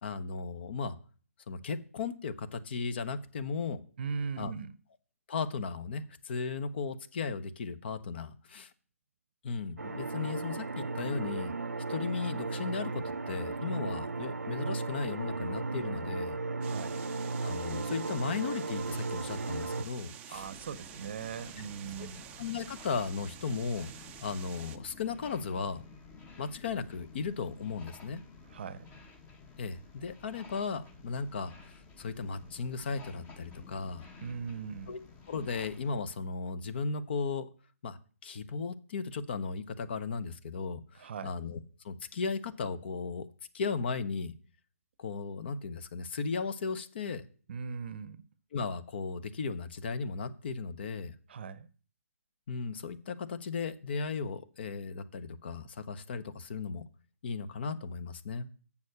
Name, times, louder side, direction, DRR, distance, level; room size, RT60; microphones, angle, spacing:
voice 1, 0.0-1.0 1.5-3.8 4.4-4.5 5.3-8.7 9.4-11.5 11.9-16.4 17.4-20.5 22.0-22.1 22.4-23.9 24.2-25.8 26.4-28.2 29.6-31.5 32.0-34.1 34.9-35.0 35.3-37.5 37.8-41.6 41.8-43.3 43.5-44.3 45.0-47.2 48.5-51.1 52.5-56.8 57.2-58.5, left 5 dB, 45° left, 0.8 m, -36 dB
voice 2, 4.0-4.7 16.6-17.0 20.3-22.2 28.5-28.8 34.2-34.9 40.9-41.3 47.5-48.2 51.3-51.7, right 6 dB, 45° right, 0.7 m, -39 dB
sound 1, 9.8-19.8, right 3 dB, 90° right, 0.6 m, -35 dB
sound 2, 16.6-24.8, right 10 dB, 15° right, 0.4 m, -49 dB
sound 3, 20.3-35.9, left 4 dB, 15° left, 1.1 m, -53 dB
7.1 x 6.3 x 6.6 m
figure-of-eight pair, 145°, 8 cm